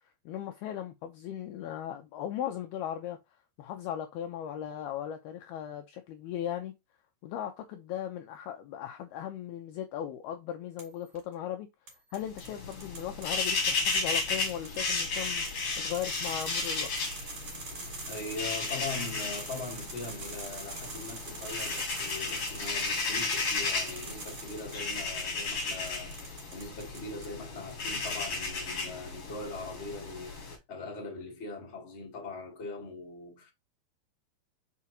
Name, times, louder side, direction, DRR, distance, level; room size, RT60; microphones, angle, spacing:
voice 1, 0.3-3.2 3.6-6.7 7.2-11.7 12.1-16.9, left 10 dB, 80° left, 2.4 m, -37 dB
sound 1, 10.8-11.2 11.9-27.3 27.7-28.5, right 3 dB, 35° right, 2.6 m, -45 dB
sound 2, 12.3-30.6, left 4 dB, 40° left, 2.4 m, -34 dB
voice 2, 17.9-33.5, left 3 dB, 20° left, 1.8 m, -41 dB
6.0 x 5.9 x 2.8 m
omnidirectional pair, 5.2 m